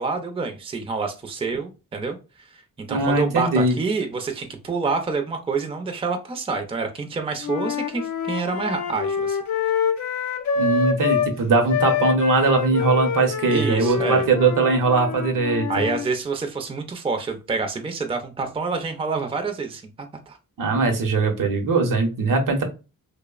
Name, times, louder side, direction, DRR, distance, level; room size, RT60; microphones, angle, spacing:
voice 1, 0.0-9.4 13.5-14.3 15.7-20.4, right 4 dB, 15° right, 6 dB, 0.4 m, -27 dB
voice 2, 2.9-3.7 10.6-15.7 20.6-22.6, right 3 dB, 65° right, 4 dB, 0.7 m, -20 dB
Wind instrument woodwind instrument, 7.4-11.3 11.7-16.1, left 6 dB, 55° left, 0.4 m, -26 dB
2.7 x 2.0 x 2.3 m, 0.30 s
cardioid pair, 65°, 34 cm